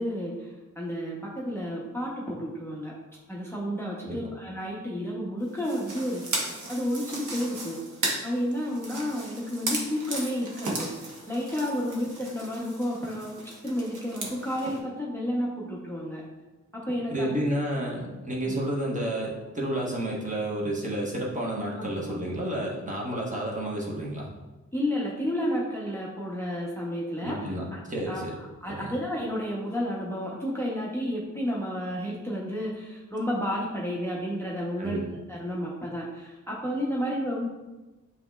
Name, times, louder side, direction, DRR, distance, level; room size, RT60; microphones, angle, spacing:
voice 1, 0.0-2.9 3.3-7.8 8.2-16.2 16.7-17.4 17.7-17.9 18.5-18.6 21.7-22.2 24.7-27.8 28.1-28.2 28.6-37.5, equal, 10° left, -4 dB, 0.7 m, -31 dB
sound 1, 5.6-14.8, right 2 dB, 80° right, 1.0 m, -36 dB
voice 2, 17.1-24.3 27.2-28.4 28.7-28.9 34.8-35.1, right 1 dB, 25° right, -4 dB, 1.0 m, -31 dB
7.6 x 2.9 x 2.3 m, 1.1 s
wide cardioid pair, 90°, 30 cm